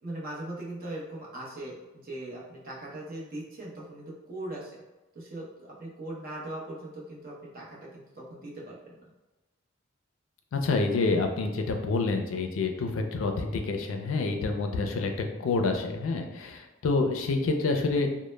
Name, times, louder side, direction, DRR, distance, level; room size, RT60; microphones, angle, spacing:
voice 1, 0.0-4.8 5.1-9.0, right 1 dB, 45° right, -5 dB, 0.7 m, -40 dB
voice 2, 10.5-18.1, left 3 dB, 80° left, 5 dB, 0.4 m, -28 dB
2.0 x 2.0 x 3.1 m, 1.1 s
head